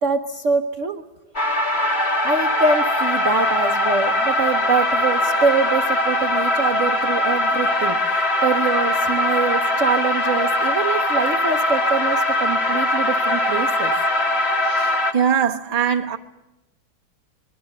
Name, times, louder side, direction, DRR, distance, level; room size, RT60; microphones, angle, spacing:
voice 1, 0.0-1.0 2.2-8.0 8.4-13.9, right 5 dB, 50° right, 1.0 m, -24 dB
sound 1, 1.4-15.1, left 1 dB, 35° left, 2.0 m, -21 dB
voice 2, 15.1-16.2, right 8 dB, 25° right, 1.0 m, -21 dB
26.0 x 22.5 x 6.6 m
omnidirectional pair, 2.1 m